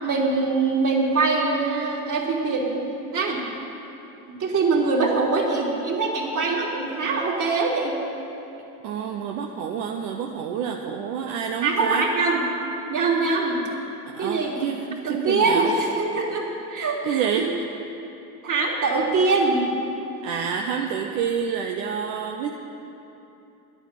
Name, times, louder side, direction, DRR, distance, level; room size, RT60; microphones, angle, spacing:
voice 1, 0.0-2.8 3.1-3.4 4.4-8.0 11.6-12.4 12.9-13.6 14.2-14.6 15.0-17.2 18.4-19.7, right 3 dB, 40° right, -2 dB, 3.1 m, -23 dB
voice 2, 8.8-12.0 14.0-15.8 17.0-17.5 20.2-22.6, right 7 dB, 70° right, 2 dB, 1.0 m, -28 dB
11.0 x 9.0 x 9.3 m, 2.9 s
hypercardioid pair, 85°, 47 cm